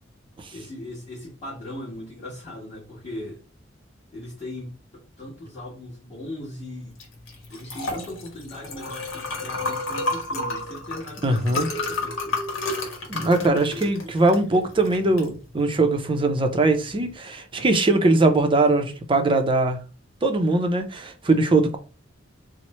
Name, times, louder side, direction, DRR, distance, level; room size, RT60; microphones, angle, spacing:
voice 1, 0.5-3.4 4.1-6.9 7.5-12.4, left 1 dB, 30° left, 1.3 m, -38 dB
Liquid, 6.9-17.1, left 2 dB, 80° left, 1.0 m, -32 dB
voice 2, 11.2-11.7 13.1-19.8 20.2-21.8, right 2 dB, 25° right, 0.5 m, -21 dB
3.0 x 2.1 x 4.1 m
head